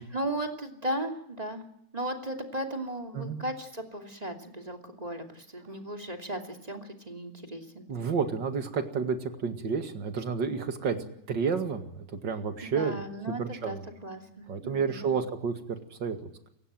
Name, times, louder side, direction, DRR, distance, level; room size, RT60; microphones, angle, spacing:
voice 1, 0.0-1.6 1.9-8.1 10.8-11.0 12.6-15.1, right 1 dB, 20° right, 4 dB, 2.9 m, -36 dB
voice 2, 7.9-11.0 11.3-13.0 13.4-13.8 14.5-16.5, right 5 dB, 85° right, 7 dB, 2.7 m, -31 dB
28.5 x 16.0 x 7.7 m, 0.75 s
omnidirectional pair, 1.9 m